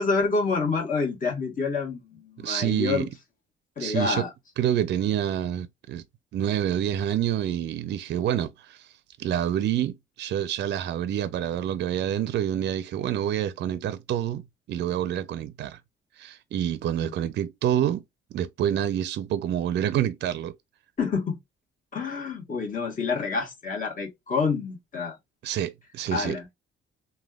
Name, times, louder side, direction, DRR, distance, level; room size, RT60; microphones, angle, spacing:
voice 1, 0.0-3.1 3.8-4.3 17.0-17.1 21.0-21.4 21.9-25.2 26.1-26.5, left 4 dB, 45° left, 1.3 m, -28 dB
voice 2, 2.4-3.1 3.8-4.2 4.6-6.0 6.3-8.9 9.2-15.8 16.2-18.0 18.3-20.5 25.4-26.4, right 10 dB, 60° right, 0.4 m, -27 dB
3.2 x 2.2 x 2.2 m
cardioid pair, 90°, 20 cm